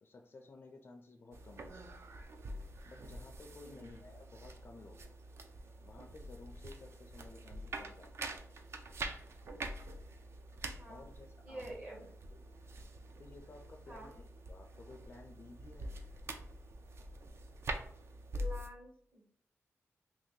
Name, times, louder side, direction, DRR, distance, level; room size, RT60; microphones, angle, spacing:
voice 1, 0.0-1.9 2.8-5.1 5.8-8.3 10.9-12.4 13.2-15.9, left 3 dB, 45° left, 3 dB, 0.4 m, -55 dB
sound 1, 1.3-18.7, right 1 dB, 60° right, 0.4 m, -46 dB
voice 2, 3.6-4.0 10.8-11.1 11.4-12.1 13.9-14.1 18.3-19.3, right 1 dB, 35° right, 0 dB, 1.0 m, -48 dB
2.8 x 2.7 x 3.7 m, 0.63 s
wide cardioid pair, 105°, 5 cm